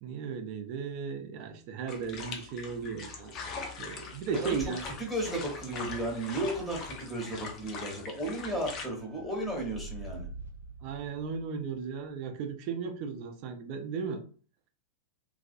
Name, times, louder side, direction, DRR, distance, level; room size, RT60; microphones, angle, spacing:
voice 1, 0.0-3.4 3.8-4.8 10.8-14.2, right 6 dB, 45° right, 0.5 m, -36 dB
sound 1, 1.9-8.8, left 4 dB, 35° left, 0.5 m, -42 dB
voice 2, 4.3-10.3, right 1 dB, 5° left, 0.9 m, -34 dB
sound 2, 9.2-11.7, right 2 dB, 80° right, 0.8 m, -44 dB
2.3 x 2.2 x 2.6 m
figure-of-eight pair, 90°, 0 cm